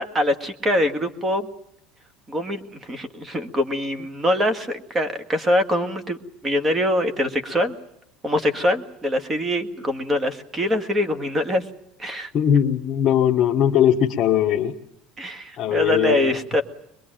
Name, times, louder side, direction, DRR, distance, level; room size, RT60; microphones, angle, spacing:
voice 1, 0.0-1.5 2.3-2.6 2.9-6.2 6.4-7.7 8.2-11.6 12.0-12.3 15.2-16.6, left 1 dB, 20° right, 9 dB, 1.9 m, -23 dB
voice 2, 12.3-14.7 15.6-16.3, left 9 dB, 35° left, -2 dB, 1.5 m, -20 dB
23.5 x 22.0 x 9.0 m, 0.74 s
cardioid pair, 150°, 0 cm